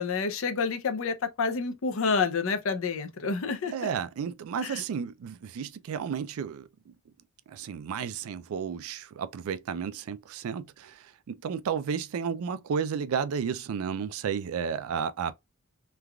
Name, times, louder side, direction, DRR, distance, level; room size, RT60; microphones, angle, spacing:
voice 1, 0.0-3.7 4.6-4.8, left 5 dB, 70° left, 0.5 m, -28 dB
voice 2, 3.7-6.6 7.5-15.3, right 7 dB, 80° right, 0.3 m, -32 dB
3.2 x 2.3 x 2.2 m
head